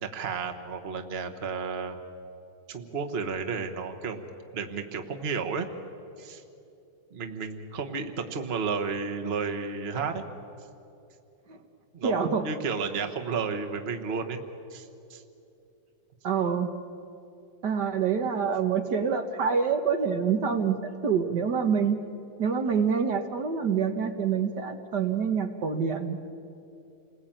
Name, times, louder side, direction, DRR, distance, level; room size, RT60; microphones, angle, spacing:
voice 1, 0.0-2.0 2.7-4.2 4.5-5.7 6.2-6.4 7.1-10.2 11.9-14.4 14.7-15.2, right 5 dB, 35° right, 5 dB, 1.5 m, -32 dB
voice 2, 12.0-12.5 16.2-16.7 17.6-22.0 22.4-26.2, right 6 dB, 65° right, 6 dB, 1.8 m, -26 dB
29.0 x 21.0 x 8.9 m, 2.8 s
omnidirectional pair, 2.0 m